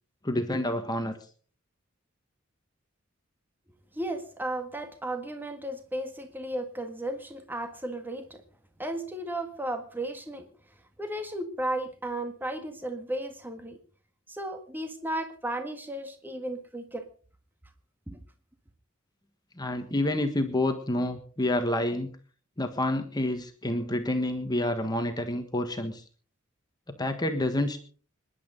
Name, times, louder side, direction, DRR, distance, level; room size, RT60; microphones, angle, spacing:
voice 1, 0.2-1.2 19.6-22.1 22.6-26.0 27.0-27.8, left 1 dB, 20° left, 6 dB, 1.4 m, -28 dB
voice 2, 3.9-8.4 8.8-10.5 11.0-13.8 14.3-17.1 18.1-18.2, right 1 dB, 10° right, 6 dB, 1.7 m, -34 dB
26.0 x 11.0 x 4.0 m, 0.41 s
head